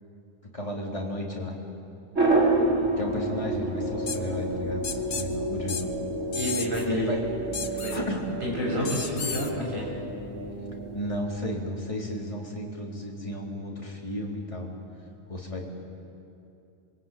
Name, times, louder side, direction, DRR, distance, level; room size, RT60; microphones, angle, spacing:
voice 1, 0.4-1.5 3.0-5.9 6.9-7.2 7.6-8.2 8.8-9.0 10.9-14.7 15.3-15.6, left 1 dB, 25° left, -2 dB, 4.1 m, -33 dB
sound 1, 2.1-11.2, right 2 dB, 65° right, 4.7 m, -29 dB
sound 2, 4.1-4.2 4.8-5.3 5.7-5.8 6.3-6.9 7.5-8.0 8.9-9.5, left 5 dB, 55° left, 1.5 m, -33 dB
voice 2, 6.3-7.2 7.8-8.0 8.4-9.9, equal, 40° right, -3 dB, 7.8 m, -29 dB
26.5 x 23.5 x 9.3 m, 2.7 s
omnidirectional pair, 1.4 m